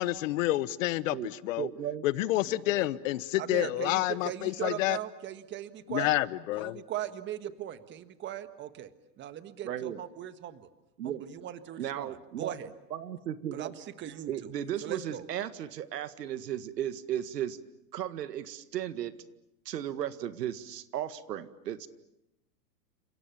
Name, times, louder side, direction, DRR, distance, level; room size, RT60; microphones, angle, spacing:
voice 1, 0.0-1.7 2.0-5.0 5.9-6.8, left 16 dB, 55° left, 17 dB, 1.1 m, -29 dB
voice 2, 1.6-2.1 3.6-3.8 9.6-10.0 11.0-11.2 11.8-12.6 12.9-13.7 14.3-17.6 17.9-19.1 19.7-21.9, right 11 dB, 90° right, 12 dB, 2.0 m, -35 dB
voice 3, 2.4-2.9 3.4-6.2 6.6-8.9 9.2-10.6 11.2-12.7 13.5-14.5 14.8-15.2, right 11 dB, 25° right, 11 dB, 1.5 m, -39 dB
30.0 x 27.5 x 7.2 m, 0.87 s
supercardioid pair, 150°, 48 cm